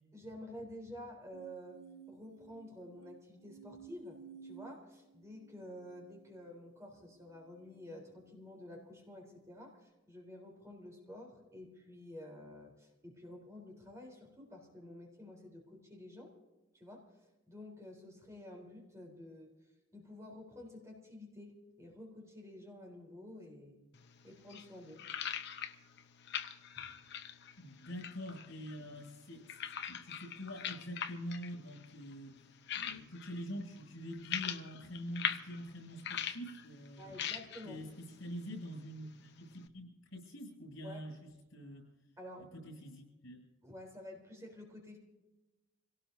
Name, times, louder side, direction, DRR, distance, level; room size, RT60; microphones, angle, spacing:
voice 1, 0.1-1.8 2.1-16.3 16.7-17.0 17.5-19.5 19.9-23.8 24.2-25.0 26.8-26.9 37.0-37.8 40.8-41.0 42.2-42.5 43.6-45.0, left 1 dB, 15° right, 0 dB, 3.8 m, -50 dB
sound 1, 1.3-8.8 9.4-9.9, right 6 dB, 80° right, 1.1 m, -57 dB
sound 2, 23.9-39.7, left 9 dB, 60° left, 0.9 m, -44 dB
voice 2, 27.6-32.3 32.7-37.1 37.6-37.9 38.2-41.8 42.5-43.4, equal, 80° left, 2 dB, 7.8 m, -45 dB
26.5 x 18.0 x 2.7 m, 1.0 s
head